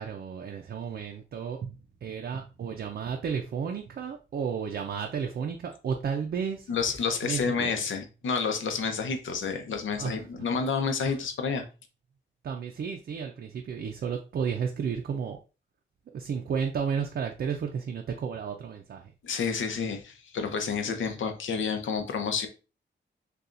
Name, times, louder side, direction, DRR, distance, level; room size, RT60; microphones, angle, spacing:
voice 1, 0.0-6.7 7.2-7.7 10.0-10.5 12.4-15.4 16.1-19.1, right 6 dB, 55° right, 3 dB, 0.5 m, -33 dB
voice 2, 6.7-11.7 19.2-22.5, left 5 dB, 85° left, 6 dB, 0.8 m, -29 dB
6.7 x 2.3 x 2.5 m, 0.32 s
wide cardioid pair, 170°, 20 cm